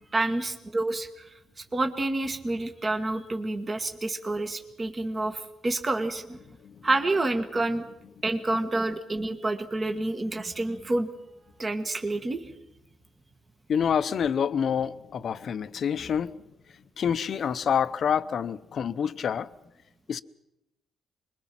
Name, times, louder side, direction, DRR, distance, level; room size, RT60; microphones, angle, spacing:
voice 1, 0.1-6.4 6.8-7.8 8.2-11.1 11.6-12.5, right 2 dB, 30° right, 1.6 m, -28 dB
voice 2, 13.7-16.4 17.0-19.5 20.1-20.2, left 7 dB, 55° left, 0.8 m, -27 dB
26.0 x 21.5 x 6.0 m
cardioid pair, 95°, 0 cm